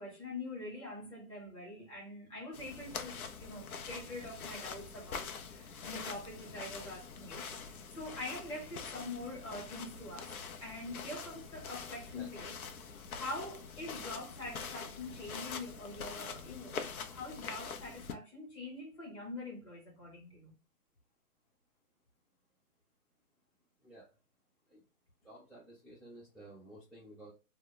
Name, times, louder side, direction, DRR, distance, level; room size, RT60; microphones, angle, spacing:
voice 1, 0.0-10.3 10.6-12.5 13.1-20.5, left 2 dB, 20° left, 1.0 m, -44 dB
sound 1, 2.5-18.1, left 5 dB, 65° left, 0.6 m, -45 dB
voice 2, 12.1-12.5 23.8-24.1 24.7-24.8 25.2-27.3, right 1 dB, ahead, 0.4 m, -53 dB
2.8 x 2.1 x 3.2 m
hypercardioid pair, 175°, 46 cm